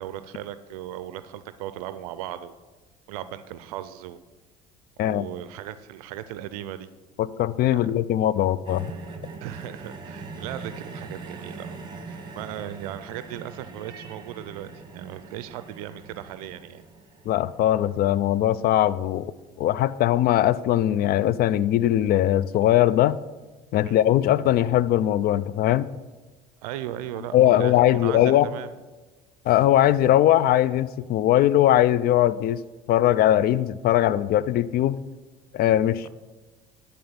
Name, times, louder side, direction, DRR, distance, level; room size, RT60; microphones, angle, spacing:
voice 1, 0.0-2.5 3.1-4.2 5.0-6.9 7.7-7.9 9.4-14.7 14.9-16.8 23.8-24.0 26.6-28.7 36.0-36.1, right 12 dB, 85° right, 13 dB, 0.4 m, -37 dB
voice 2, 7.2-8.9 17.3-19.3 19.6-23.2 23.7-25.9 27.3-28.5 29.5-32.6 32.9-35.0 35.5-36.1, left 12 dB, 55° left, 18 dB, 0.4 m, -20 dB
sound 1, 8.6-18.8 19.7-19.9, right 4 dB, 25° right, 1.8 m, -42 dB
10.5 x 4.4 x 6.9 m, 1.3 s
supercardioid pair, 75°, 19 cm